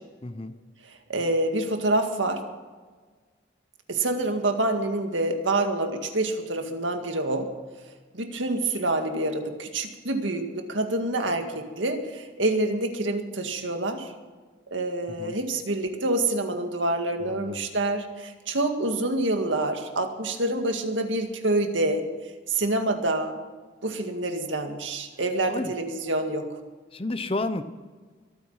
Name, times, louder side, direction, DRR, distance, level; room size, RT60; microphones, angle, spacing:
voice 1, 0.2-0.5 15.2-15.4 17.2-17.7 25.5-25.7 26.9-27.6, left 2 dB, 30° left, 11 dB, 0.8 m, -31 dB
voice 2, 0.8-2.4 3.9-7.5 8.1-14.1 14.7-22.0 22.5-23.4 23.8-26.5, right 2 dB, 90° right, 5 dB, 2.0 m, -27 dB
23.0 x 9.2 x 5.7 m, 1.4 s
head